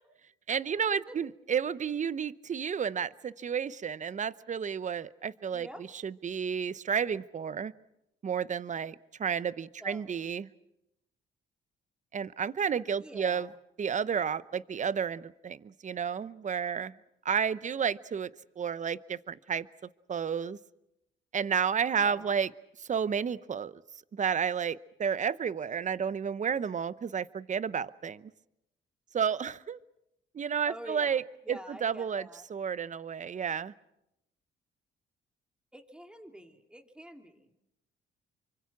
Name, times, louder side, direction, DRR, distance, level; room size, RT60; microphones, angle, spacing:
voice 1, 0.5-5.7 6.0-7.7 8.2-10.5 12.1-13.5 13.8-16.9 17.2-18.3 18.6-19.7 20.1-20.6 21.3-22.5 22.9-23.8 24.1-28.3 29.1-29.8 30.3-31.2 31.5-33.7, right 7 dB, 40° right, 18 dB, 0.8 m, -31 dB
voice 2, 5.5-5.9 9.8-10.2 13.0-13.6 22.0-22.4 30.7-31.2 31.4-32.4 35.7-37.5, right 1 dB, 5° right, 5 dB, 2.8 m, -46 dB
27.5 x 24.5 x 6.0 m, 0.84 s
cardioid pair, 90°, 20 cm